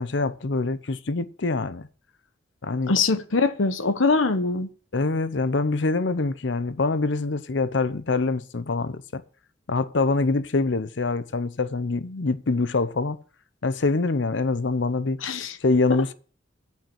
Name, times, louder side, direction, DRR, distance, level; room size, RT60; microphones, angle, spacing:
voice 1, 0.0-1.9 2.6-3.0 4.9-9.2 9.7-13.2 13.6-15.2 15.6-16.1, left 3 dB, 65° left, 0.7 m, -25 dB
voice 2, 2.9-4.7 15.2-15.6, left 4 dB, 90° left, 1.0 m, -23 dB
8.8 x 5.7 x 7.3 m
head